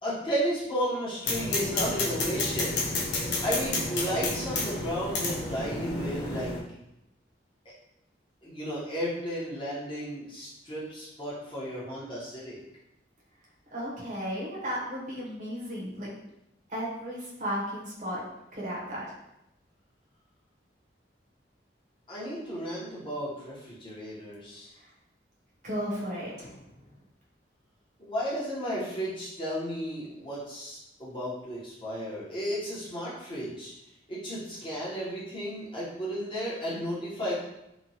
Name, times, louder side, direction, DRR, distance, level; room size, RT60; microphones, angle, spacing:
voice 1, 0.0-2.8 3.4-6.5 8.4-12.6 22.1-24.7 28.0-33.7 34.1-37.3, equal, 25° left, -8 dB, 0.8 m, -33 dB
sound 1, 1.2-6.6, left 2 dB, 70° left, 0.6 m, -30 dB
voice 2, 13.7-16.2 16.7-18.2 18.5-19.0 25.6-26.6, equal, 40° right, -5 dB, 0.7 m, -34 dB
2.9 x 2.2 x 2.7 m, 0.87 s
head